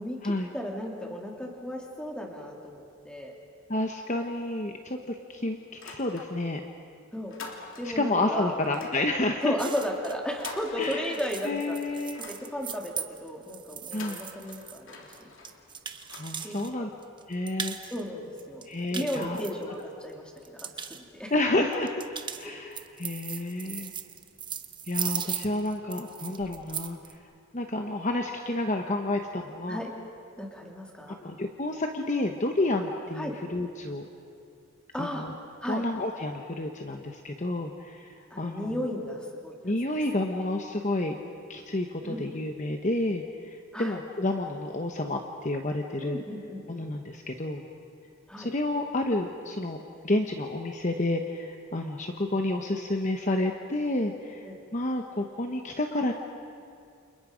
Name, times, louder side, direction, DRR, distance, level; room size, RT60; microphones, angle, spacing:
voice 1, 0.0-3.3 7.1-7.4 7.8-8.5 9.4-11.8 12.3-15.3 16.4-16.9 17.8-21.3 22.4-22.5 23.3-23.4 25.8-25.9 29.7-29.9 30.4-31.2 33.1-33.3 34.9-35.2 35.6-35.8 38.3-39.7 42.0-42.3 43.7-44.0 46.0-46.7 48.3-48.5 54.4-54.6, equal, 5° left, 0 dB, 2.9 m, -35 dB
voice 2, 3.7-5.6 5.8-6.6 7.8-9.5 10.8-11.0 11.4-12.2 13.9-14.2 16.2-16.9 17.3-17.8 18.7-19.4 21.3-22.0 22.4-23.9 24.9-27.0 27.5-29.8 31.1-34.1 35.0-35.3 35.7-38.8 39.6-41.2 41.5-46.2 46.7-47.6 48.4-49.8 50.0-56.1, left 2 dB, 35° left, 3 dB, 1.1 m, -30 dB
sound 1, 5.7-6.7 7.0-8.1 8.6-11.5 11.8-13.0 13.8-16.9, left 4 dB, 70° left, 3.1 m, -46 dB
sound 2, 9.6-16.7 17.0-18.0 18.4-20.0 20.4-21.0 21.7-27.1, right 7 dB, 20° right, 1.0 m, -38 dB
30.0 x 28.0 x 5.2 m, 2.5 s
head